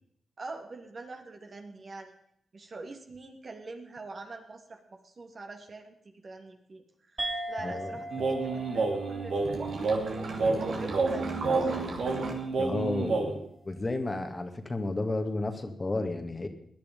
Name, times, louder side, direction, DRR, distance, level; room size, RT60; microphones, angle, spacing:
voice 1, 0.4-2.1 2.5-6.0 6.2-6.8 7.1-9.6 9.9-11.9, right 3 dB, 50° right, 3 dB, 2.7 m, -44 dB
sound 1, 7.2-12.1, right 1 dB, 30° right, 4.0 m, -41 dB
voice 2, 7.6-7.9 12.6-16.5, left 2 dB, 30° left, 6 dB, 2.1 m, -32 dB
sound 2, 8.1-13.3, right 3 dB, 70° right, 2.9 m, -29 dB
17.0 x 10.5 x 5.4 m, 0.71 s
hypercardioid pair, 40°, 0 cm